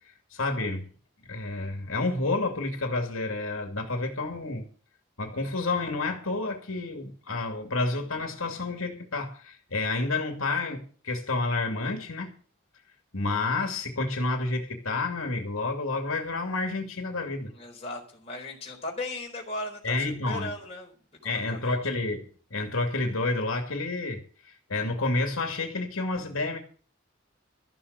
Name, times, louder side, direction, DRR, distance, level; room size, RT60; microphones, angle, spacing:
voice 1, 0.3-0.9 1.3-4.7 5.2-12.3 13.1-17.5 19.8-20.5 21.2-26.6, left 3 dB, 90° left, 2.7 m, -30 dB
voice 2, 17.5-21.8, left 2 dB, 30° left, 4.2 m, -37 dB
14.0 x 7.0 x 8.3 m
head